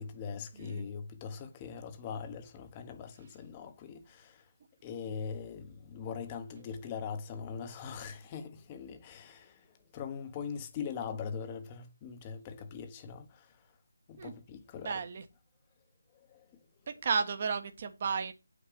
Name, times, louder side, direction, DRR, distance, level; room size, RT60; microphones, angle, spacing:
voice 1, 0.0-4.5 4.8-13.8 14.1-15.0 16.1-16.7, left 6 dB, 20° left, 1.2 m, -42 dB
voice 2, 0.6-0.9 14.2-14.3 14.8-15.2 16.9-18.3, right 5 dB, 35° right, 1.2 m, -33 dB
8.7 x 4.7 x 6.7 m
figure-of-eight pair, 155°, 0 cm